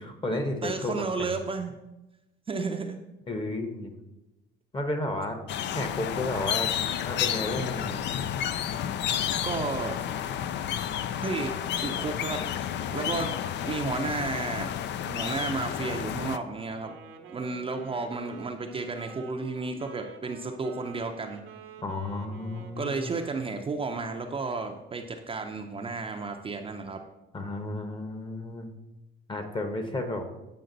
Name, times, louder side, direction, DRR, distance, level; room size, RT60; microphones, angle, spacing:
voice 1, 0.0-1.3 3.3-3.9 4.7-5.4 5.7-6.7 7.0-8.1 21.8-23.1 27.3-28.7 29.3-30.2, left 2 dB, 25° left, 7 dB, 0.9 m, -32 dB
voice 2, 0.6-1.7 2.5-3.0 9.4-10.0 11.2-11.5 11.8-12.5 12.9-13.3 13.7-14.7 15.0-16.9 17.3-21.4 22.8-27.0, right 4 dB, 25° right, 4 dB, 0.5 m, -32 dB
sound 1, 5.5-16.4, left 10 dB, 60° left, 0.4 m, -31 dB
Wind instrument woodwind instrument, 16.7-23.9, right 6 dB, 75° right, 0.9 m, -48 dB
7.8 x 5.0 x 3.9 m, 0.96 s
cardioid pair, 120°, 20 cm